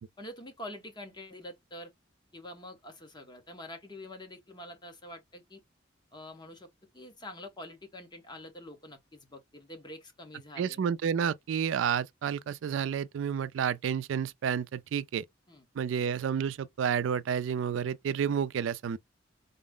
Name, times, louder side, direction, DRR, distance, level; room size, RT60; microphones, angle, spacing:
voice 1, 0.2-1.9 2.3-5.6 6.1-6.7 6.9-10.8 15.5-15.6, left 1 dB, 25° left, 1.1 m, -46 dB
voice 2, 10.6-15.2 15.8-19.0, right 7 dB, 80° right, 0.3 m, -30 dB
4.1 x 2.0 x 3.6 m
head